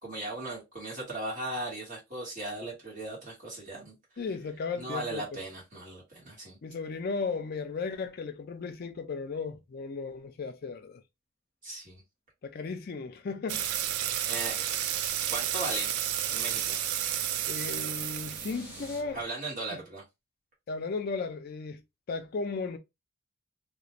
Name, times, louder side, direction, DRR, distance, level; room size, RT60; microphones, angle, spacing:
voice 1, 0.0-3.9 4.8-6.6 11.6-12.0 14.3-14.7 15.3-16.0 16.3-16.8 19.1-20.0, right 2 dB, 35° right, 1.3 m, -37 dB
voice 2, 4.2-5.4 6.6-11.0 12.4-13.7 17.5-19.2 19.7-19.8 20.7-21.8 22.1-22.8, left 4 dB, 45° left, 0.3 m, -35 dB
sound 1, 13.5-19.2, right 10 dB, 80° right, 0.3 m, -32 dB
sound 2, 15.5-19.0, equal, 5° right, 0.8 m, -52 dB
2.4 x 2.1 x 2.9 m
head